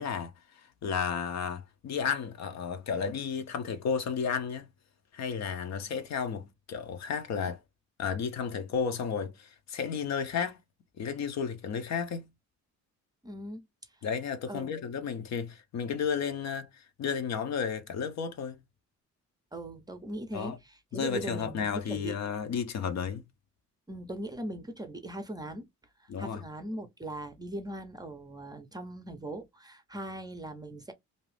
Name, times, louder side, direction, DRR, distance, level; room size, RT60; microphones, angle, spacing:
voice 1, 0.0-4.7 5.1-7.6 8.0-10.6 11.0-12.3 14.0-18.6 20.3-20.6 20.9-23.2 26.1-26.4, left 6 dB, 60° left, 0.7 m, -33 dB
voice 2, 13.2-13.6 14.5-14.8 19.5-22.2 23.9-25.7 26.0-30.9, right 1 dB, 15° right, 0.6 m, -40 dB
2.6 x 2.4 x 3.2 m
cardioid pair, 90°, 30 cm